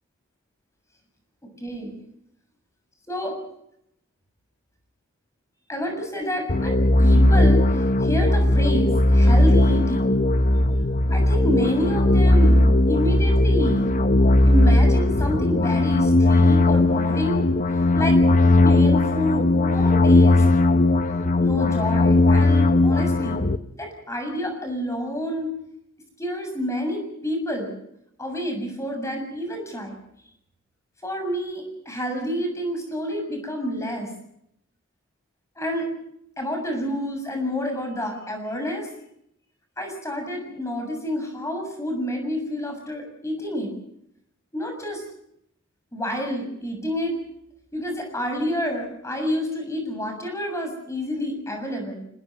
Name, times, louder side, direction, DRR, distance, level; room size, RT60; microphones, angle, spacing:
voice 1, 1.6-1.9 3.1-3.3 5.7-7.7 8.0-10.1 11.1-13.8 14.5-17.5 17.9-18.2 18.6-20.4 21.4-23.4 23.8-25.5 26.2-27.7 28.2-30.0 31.0-34.1 35.6-35.9 36.4-38.9 39.8-43.7 44.5-45.0 45.9-47.2 47.7-52.0, left 1 dB, 15° left, 4 dB, 7.0 m, -28 dB
sound 1, 6.5-23.6, left 2 dB, 35° left, 0.9 m, -18 dB
27.5 x 19.5 x 6.5 m, 0.77 s
head